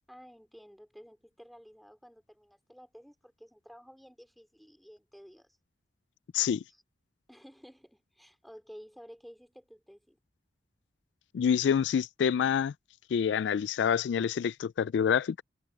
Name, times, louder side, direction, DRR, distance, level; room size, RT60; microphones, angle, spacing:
voice 1, 0.1-5.6 6.7-6.8 7.3-10.2, equal, ahead, 3.2 m, -53 dB
voice 2, 11.3-12.7 13.1-15.4, left 8 dB, 80° left, 0.3 m, -27 dB
head